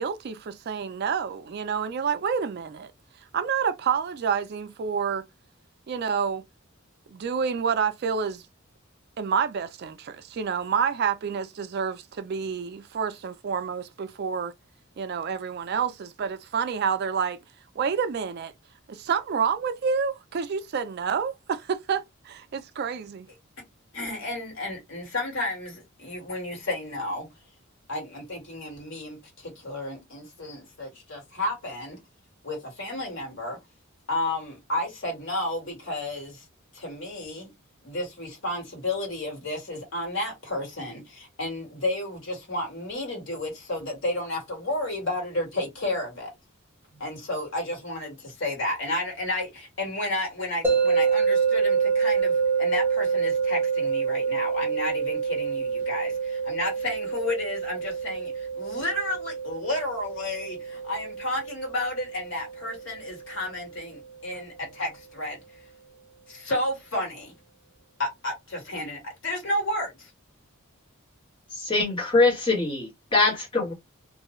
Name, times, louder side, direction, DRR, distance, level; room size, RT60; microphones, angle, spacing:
voice 1, 0.0-2.9 3.3-5.2 5.9-6.4 7.1-8.4 9.2-14.5 15.0-17.4 17.8-18.5 18.9-23.3, right 6 dB, 50° right, 0.3 m, -28 dB
voice 2, 23.9-27.3 27.9-32.0 32.4-33.6 34.1-36.4 36.7-37.5 37.8-46.3 46.9-65.4 66.3-67.3 68.0-70.1, left 1 dB, 60° left, 1.6 m, -32 dB
sound 1, 50.6-63.7, right 5 dB, 10° right, 0.8 m, -27 dB
voice 3, 71.5-73.7, left 3 dB, 25° left, 1.2 m, -23 dB
2.5 x 2.3 x 3.0 m
head